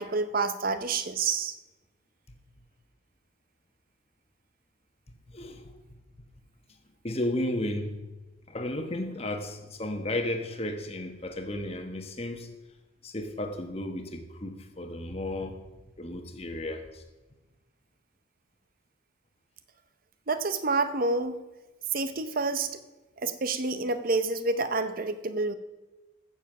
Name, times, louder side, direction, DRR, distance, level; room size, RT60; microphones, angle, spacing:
voice 1, 0.0-1.5 20.3-21.4 21.9-22.7 23.2-25.5, right 3 dB, 45° right, 11 dB, 0.8 m, -28 dB
voice 2, 7.0-8.0 8.5-12.5 13.0-15.6 16.0-17.0, left 1 dB, 30° left, 5 dB, 1.1 m, -33 dB
14.5 x 7.2 x 6.1 m, 1.1 s
head